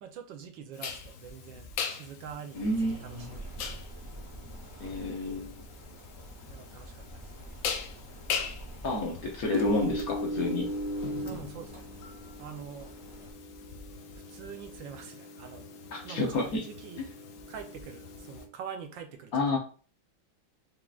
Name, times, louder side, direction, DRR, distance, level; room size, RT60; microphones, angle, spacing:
voice 1, 0.0-3.8 6.5-7.6 11.2-11.9 12.4-12.9 14.3-15.7 16.0-17.0 17.5-19.6, right 7 dB, 75° right, 5 dB, 1.4 m, -45 dB
sound 1, 0.8-18.4, left 3 dB, 75° left, 0.8 m, -38 dB
voice 2, 2.5-3.3 4.8-5.6 8.8-10.7 15.9-16.6 19.3-19.6, left 2 dB, 60° left, 0 dB, 1.1 m, -30 dB
sound 2, 2.5-13.3, right 1 dB, 20° right, 1.0 m, -47 dB
4.9 x 3.6 x 2.4 m, 0.39 s
omnidirectional pair, 2.1 m